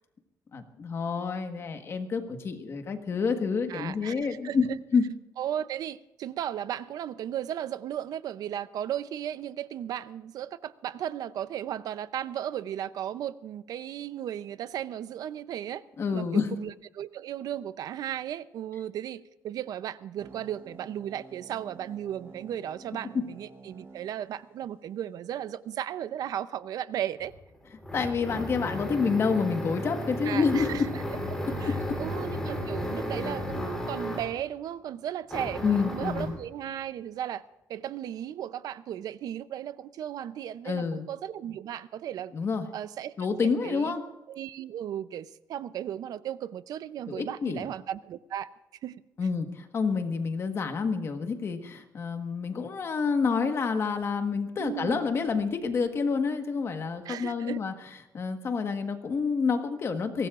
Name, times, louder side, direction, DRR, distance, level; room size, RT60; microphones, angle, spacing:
voice 1, 0.5-4.7 4.9-5.0 16.0-16.6 27.9-30.9 31.6-32.0 35.6-36.3 40.6-41.0 42.3-42.6 43.2-44.0 47.1-47.7 49.2-57.7 58.1-60.3, left 5 dB, 40° left, 1.5 m, -28 dB
voice 2, 3.7-4.1 4.4-4.8 5.4-15.8 16.1-27.3 30.2-31.0 31.6-37.4 37.7-42.3 42.7-43.1 43.4-44.0 44.3-48.5 48.8-48.9 54.6-55.0 57.0-57.6, right 10 dB, 65° right, 0.6 m, -35 dB
sound 1, 20.2-25.2, right 3 dB, 35° right, 2.4 m, -51 dB
sound 2, 27.2-34.4 35.3-36.4, left 1 dB, 10° left, 3.3 m, -34 dB
23.0 x 18.0 x 2.5 m
cardioid pair, 155°, 7 cm